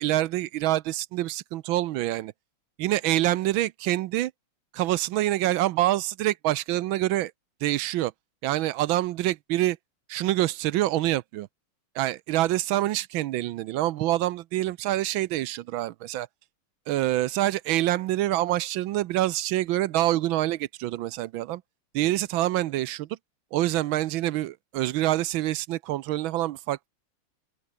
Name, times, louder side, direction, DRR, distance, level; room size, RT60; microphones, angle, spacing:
voice 1, 0.0-2.3 2.8-4.3 4.7-7.3 7.6-8.1 8.4-9.8 10.1-11.5 11.9-16.3 16.9-21.6 21.9-23.1 23.5-26.9, right 15 dB, 75° right, 1.3 m, -26 dB
open air
omnidirectional pair, 2.4 m